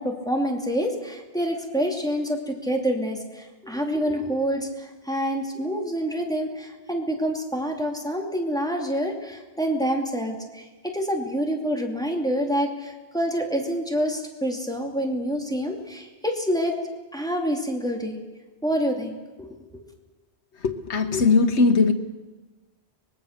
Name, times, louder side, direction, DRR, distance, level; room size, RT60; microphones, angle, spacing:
voice 1, 0.0-16.8 17.1-18.2 18.6-19.5, equal, 5° left, 2 dB, 2.6 m, -27 dB
voice 2, 20.6-21.9, left 4 dB, 85° left, 6 dB, 1.5 m, -19 dB
24.5 x 21.0 x 6.6 m, 1.2 s
omnidirectional pair, 1.1 m